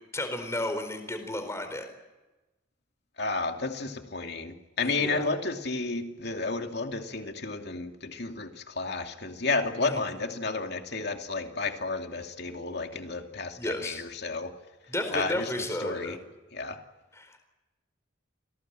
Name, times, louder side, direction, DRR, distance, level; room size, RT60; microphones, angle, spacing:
voice 1, 0.1-1.9 4.8-5.2 9.8-10.1 13.6-14.0 14.9-16.2 17.1-17.4, left 1 dB, 15° left, 7 dB, 4.3 m, -33 dB
voice 2, 3.2-14.5 15.1-15.5 15.8-16.2 16.5-16.8, left 3 dB, 55° left, 4 dB, 2.6 m, -32 dB
28.0 x 19.0 x 9.1 m, 1.1 s
head